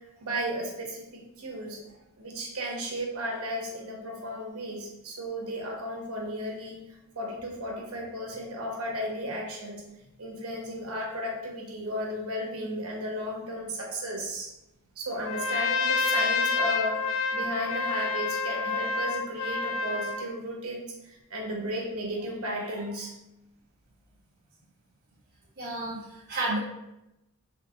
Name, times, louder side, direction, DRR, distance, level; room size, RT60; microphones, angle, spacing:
voice 1, 0.2-1.8 2.2-6.8 7.2-9.8 10.2-14.5 15.0-17.0 17.3-20.8 21.3-23.1, equal, 90° right, 0 dB, 1.1 m, -34 dB
Trumpet, 15.2-20.3, left 4 dB, 70° left, 0.4 m, -28 dB
voice 2, 25.6-26.6, right 2 dB, 45° right, -7 dB, 1.3 m, -31 dB
4.4 x 3.7 x 2.8 m, 0.89 s
head